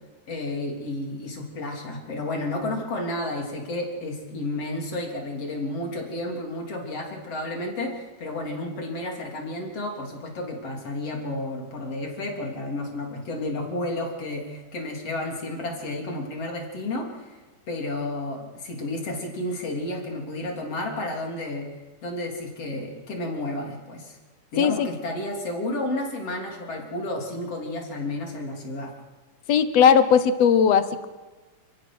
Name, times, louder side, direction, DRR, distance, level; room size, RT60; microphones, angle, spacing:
voice 1, 0.3-17.4 17.7-21.7 22.0-24.2 24.5-28.9, left 1 dB, 45° left, 1 dB, 4.3 m, -31 dB
voice 2, 24.6-24.9 29.5-31.1, left 7 dB, 65° left, 11 dB, 1.7 m, -18 dB
28.5 x 17.5 x 6.2 m, 1.2 s
omnidirectional pair, 3.9 m